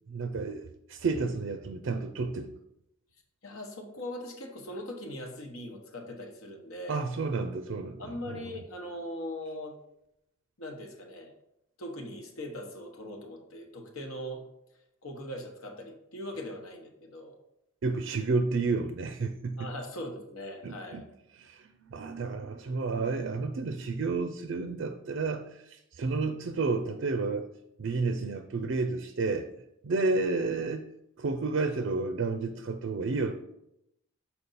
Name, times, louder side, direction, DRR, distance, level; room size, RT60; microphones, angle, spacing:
voice 1, 0.1-2.5 6.9-8.6 17.8-19.7 20.6-21.0 21.3-27.5 27.8-29.5 29.8-30.8 31.2-33.3, right 3 dB, 60° right, 8 dB, 0.4 m, -31 dB
voice 2, 3.4-7.0 8.0-9.7 10.6-11.3 11.8-14.4 15.0-17.4 19.6-21.0 30.0-30.1, left 1 dB, 75° left, 3 dB, 1.2 m, -40 dB
6.8 x 4.3 x 4.1 m, 0.83 s
head